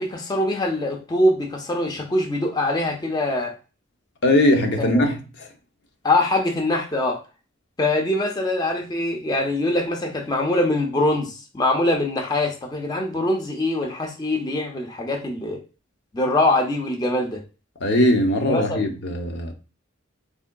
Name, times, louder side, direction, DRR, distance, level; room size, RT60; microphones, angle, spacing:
voice 1, 0.0-3.5 4.8-5.0 6.0-7.2 7.8-15.6 16.1-17.4 18.5-18.8, left 1 dB, 20° left, 0.5 m, -23 dB
voice 2, 4.2-5.5 17.8-19.5, left 1 dB, 60° left, 0.6 m, -20 dB
3.5 x 3.5 x 2.2 m
head